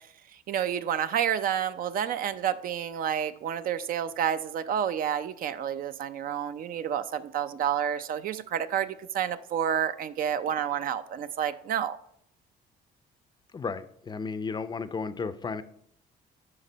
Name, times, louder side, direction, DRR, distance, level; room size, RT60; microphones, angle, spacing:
voice 1, 0.5-12.0, right 9 dB, 55° right, 12 dB, 0.5 m, -29 dB
voice 2, 13.5-15.6, left 4 dB, 25° left, 13 dB, 0.5 m, -33 dB
9.6 x 5.3 x 4.0 m, 0.70 s
cardioid pair, 110°, 17 cm